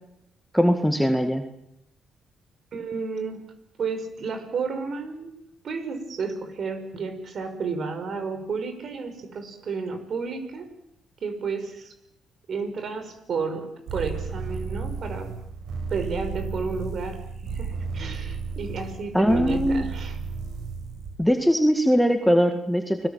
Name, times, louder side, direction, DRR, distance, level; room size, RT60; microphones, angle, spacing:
voice 1, 0.5-1.5 19.1-19.9 21.2-23.1, equal, ahead, 5 dB, 1.9 m, -21 dB
voice 2, 2.7-3.4 3.8-5.3 5.6-10.7 11.2-11.9 12.5-15.3 15.9-20.2, right 4 dB, 55° right, 8 dB, 5.6 m, -32 dB
sound 1, 13.9-21.1, right 5 dB, 80° right, 7.6 m, -33 dB
30.0 x 21.5 x 7.6 m, 0.80 s
cardioid pair, 90°, 0 cm